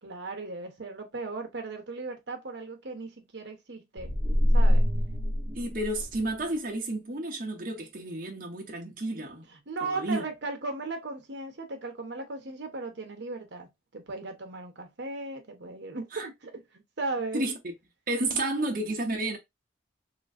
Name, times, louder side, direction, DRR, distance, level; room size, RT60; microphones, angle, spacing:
voice 1, 0.0-4.1 4.5-4.9 9.5-13.7 13.9-16.6 17.0-17.4, right 3 dB, 70° right, 1.0 m, -37 dB
sound 1, 4.0-6.4, equal, 20° right, 0.5 m, -24 dB
voice 2, 5.6-9.5 9.8-10.2 16.1-16.3 17.3-17.7 18.1-19.4, right 2 dB, 45° right, 1.0 m, -31 dB
3.2 x 3.1 x 2.5 m
head